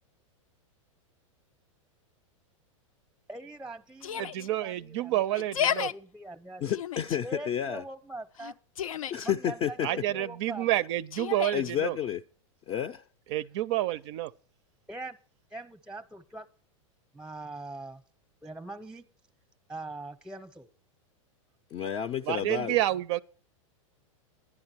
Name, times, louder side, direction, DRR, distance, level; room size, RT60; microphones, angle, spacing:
voice 1, 3.3-6.7 7.2-8.5 9.2-10.7 14.9-15.2 15.5-16.5 17.1-18.0 18.4-19.0 19.7-20.7, right 2 dB, 5° right, 0.7 m, -42 dB
Yell, 4.0-4.5 5.3-5.9 6.7-7.2 8.4-9.3 11.1-11.7, left 9 dB, 85° left, 0.5 m, -32 dB
voice 2, 4.2-5.9 9.8-12.0 13.3-14.3 22.3-23.2, right 14 dB, 55° right, 0.4 m, -29 dB
voice 3, 6.6-7.8 9.1-9.9 11.5-12.2 12.7-13.0 21.7-22.8, left 9 dB, 30° left, 0.4 m, -30 dB
11.0 x 10.5 x 4.5 m
hypercardioid pair, 115°, 17 cm